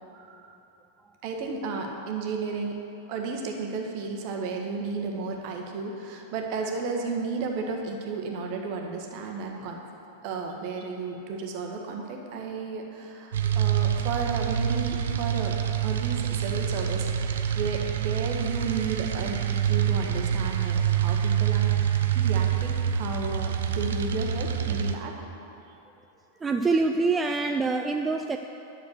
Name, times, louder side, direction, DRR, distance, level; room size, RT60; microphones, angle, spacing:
voice 1, 0.1-0.6 1.2-2.7 3.1-9.8 10.2-15.5 15.8-21.7 22.1-25.1, right 4 dB, 45° right, 2 dB, 1.4 m, -33 dB
sound 1, 13.3-24.9, right 9 dB, 60° right, 0.6 m, -26 dB
voice 2, 26.4-28.4, right 3 dB, 15° right, 5 dB, 0.4 m, -25 dB
10.5 x 6.7 x 6.6 m, 2.9 s
figure-of-eight pair, 90°, 0 cm